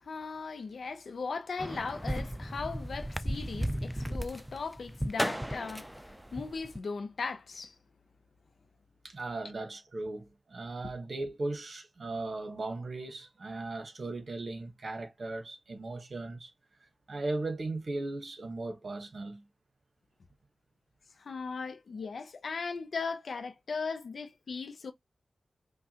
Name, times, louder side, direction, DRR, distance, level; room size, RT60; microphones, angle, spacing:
voice 1, 0.0-5.9 6.3-7.7 21.2-24.9, left 4 dB, 65° left, 0.5 m, -38 dB
sound 1, 1.6-6.8, equal, 5° right, 0.3 m, -35 dB
voice 2, 9.0-16.5 17.1-19.4, right 2 dB, 55° right, 1.1 m, -37 dB
5.4 x 2.3 x 2.8 m
wide cardioid pair, 85°, 0 cm